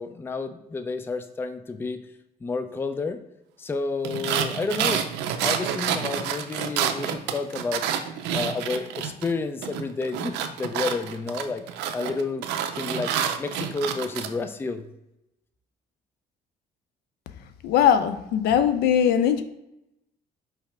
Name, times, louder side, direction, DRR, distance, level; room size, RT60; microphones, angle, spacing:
voice 1, 0.0-2.0 2.4-3.2 3.6-5.1 5.4-7.9 8.3-11.6 11.9-12.4 12.8-13.1 13.4-14.8, left 3 dB, 15° left, 0.3 m, -30 dB
sound 1, 4.0-9.3 9.6-14.3, right 9 dB, 90° right, 0.5 m, -28 dB
voice 2, 17.6-19.4, left 9 dB, 75° left, 0.5 m, -20 dB
4.7 x 3.3 x 3.1 m
cardioid pair, 110°, 17 cm